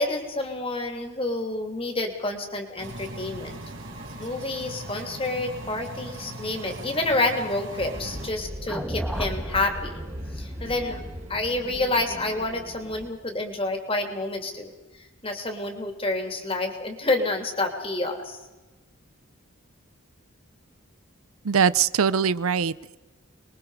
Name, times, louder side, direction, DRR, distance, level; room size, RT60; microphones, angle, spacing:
voice 1, 0.0-3.6 4.2-10.0 10.3-11.0 11.3-18.4, left 2 dB, 25° left, 4 dB, 3.0 m, -28 dB
sound 1, 2.8-8.3, right 1 dB, 65° right, 4.1 m, -39 dB
sound 2, 7.8-13.1, equal, 30° right, 3.3 m, -39 dB
sound 3, 8.7-12.9, equal, ahead, 1.5 m, -36 dB
voice 2, 21.4-23.0, right 6 dB, 80° right, 17 dB, 0.6 m, -22 dB
26.0 x 22.0 x 5.0 m, 1.1 s
head